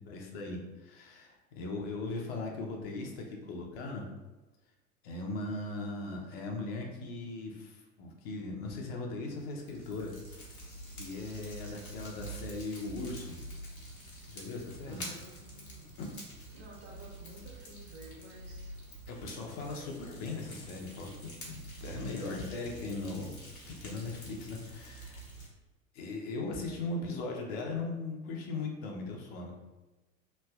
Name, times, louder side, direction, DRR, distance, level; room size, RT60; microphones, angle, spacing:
voice 1, 0.0-4.0 5.0-10.5 10.9-13.4 14.3-15.0 16.0-16.1 19.1-21.1 21.4-23.3 23.6-25.2 25.9-29.6, left 3 dB, 45° left, 1 dB, 0.7 m, -39 dB
Fire, 9.3-25.5, right 1 dB, 85° left, 1.0 m, -47 dB
voice 2, 14.8-15.9 16.5-18.7 19.6-20.1 26.6-26.8, right 1 dB, 55° right, -2 dB, 1.1 m, -52 dB
3.2 x 2.5 x 2.3 m, 1.1 s
figure-of-eight pair, 85°, 41 cm